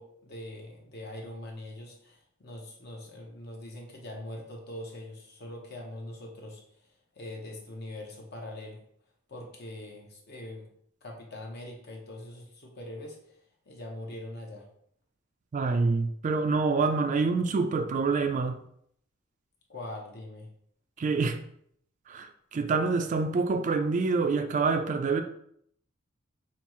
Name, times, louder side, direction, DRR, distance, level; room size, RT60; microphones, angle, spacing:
voice 1, 0.0-6.8 7.1-8.8 9.3-10.7 11.0-13.4 13.7-14.7 19.7-20.5, left 1 dB, 55° left, 0.9 m, -42 dB
voice 2, 15.5-18.6 21.0-21.4 22.1-25.2, right 4 dB, 40° right, 0.3 m, -26 dB
5.3 x 2.3 x 3.0 m
head